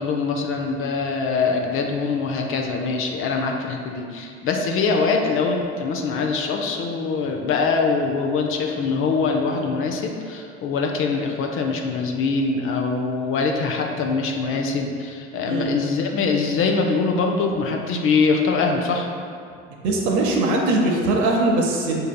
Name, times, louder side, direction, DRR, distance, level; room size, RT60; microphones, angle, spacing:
voice 1, 0.0-19.1, left 4 dB, 40° left, 2 dB, 0.4 m, -23 dB
voice 2, 19.8-22.0, right 2 dB, 60° right, 0 dB, 0.7 m, -20 dB
5.1 x 2.7 x 2.2 m, 2.3 s
hypercardioid pair, 70°, 33 cm